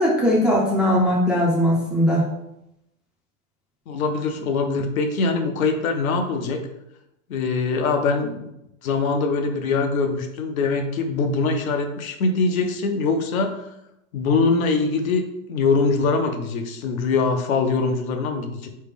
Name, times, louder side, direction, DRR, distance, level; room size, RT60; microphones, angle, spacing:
voice 1, 0.0-2.2, equal, ahead, -5 dB, 0.4 m, -19 dB
voice 2, 3.9-6.6 7.3-8.5 8.8-13.6 14.1-18.7, left 4 dB, 80° left, 5 dB, 0.9 m, -23 dB
4.0 x 3.3 x 3.5 m, 0.86 s
hypercardioid pair, 130°, 41 cm